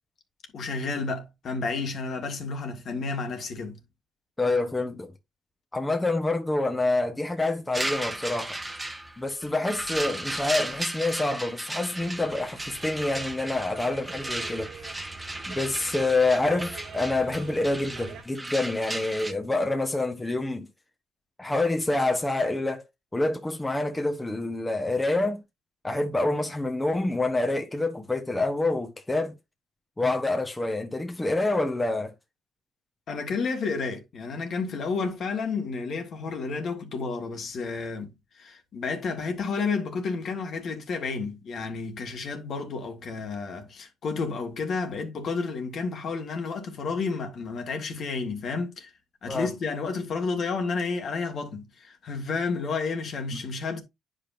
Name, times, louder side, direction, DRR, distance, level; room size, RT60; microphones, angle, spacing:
voice 1, 0.5-3.9 33.1-48.9 49.2-53.8, left 4 dB, 60° left, 1.9 m, -31 dB
voice 2, 4.4-5.1 5.7-8.6 9.2-14.7 15.5-20.7 21.4-22.8 23.1-25.4 25.8-29.4 30.0-32.1 49.3-49.5, left 2 dB, 15° left, 1.1 m, -27 dB
sound 1, 7.7-19.3, right 1 dB, 10° right, 1.1 m, -35 dB
sound 2, 12.0-18.2, right 6 dB, 85° right, 1.6 m, -45 dB
9.7 x 5.2 x 2.7 m
cardioid pair, 90°, 0 cm